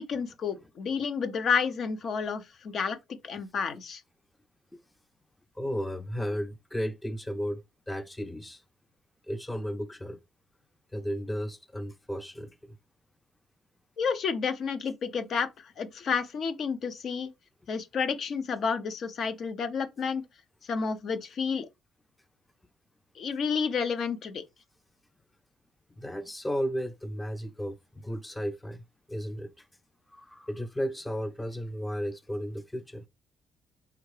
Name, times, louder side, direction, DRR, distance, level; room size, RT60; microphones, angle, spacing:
voice 1, 0.0-3.0 3.2-4.0 14.0-17.3 17.7-20.2 20.6-21.7 23.2-24.4, left 6 dB, 60° left, 0.7 m, -30 dB
voice 2, 5.6-7.6 7.9-8.6 9.3-10.2 10.9-12.7 26.0-28.8 29.1-29.6 30.1-33.0, equal, 10° left, 0.5 m, -34 dB
4.6 x 3.5 x 3.2 m
cardioid pair, 90°, 0 cm